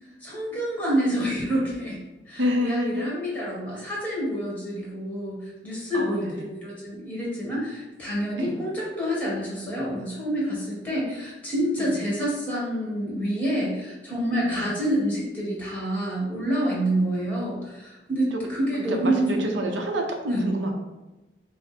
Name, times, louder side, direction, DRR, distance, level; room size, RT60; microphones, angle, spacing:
voice 1, 0.2-2.0 2.3-19.5 20.3-20.5, equal, 10° left, -5 dB, 1.5 m, -27 dB
voice 2, 2.4-3.2 5.9-6.5 8.4-8.6 11.8-11.9 14.5-14.7 18.3-18.4 18.8-20.7, equal, 80° right, 2 dB, 0.7 m, -28 dB
5.8 x 2.1 x 4.2 m, 1.1 s
head